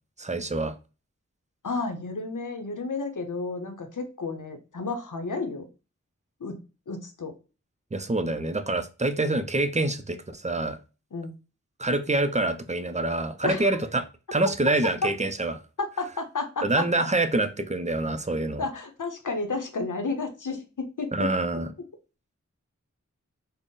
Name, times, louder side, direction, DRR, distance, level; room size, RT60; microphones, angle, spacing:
voice 1, 0.2-0.7 7.9-10.8 11.8-14.1 14.3-15.6 16.6-18.6 21.1-21.7, right 2 dB, 25° right, 0.4 m, -26 dB
voice 2, 1.6-5.7 6.4-6.6 6.9-7.3 11.1-11.3 13.4-13.7 15.0-15.1 15.8-17.1 18.6-21.3, left 3 dB, 85° left, 0.7 m, -31 dB
3.8 x 2.1 x 3.7 m
wide cardioid pair, 40°, 30 cm